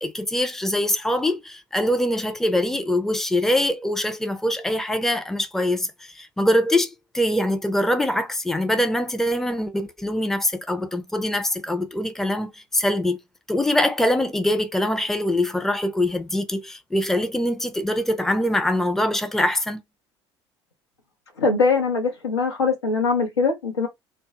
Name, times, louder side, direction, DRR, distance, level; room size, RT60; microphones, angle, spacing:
voice 1, 0.0-13.2 13.5-19.8, left 1 dB, 5° left, 0.4 m, -23 dB
voice 2, 21.4-23.9, left 4 dB, 90° left, 0.7 m, -22 dB
2.1 x 2.0 x 2.8 m
hypercardioid pair, 60°, 14 cm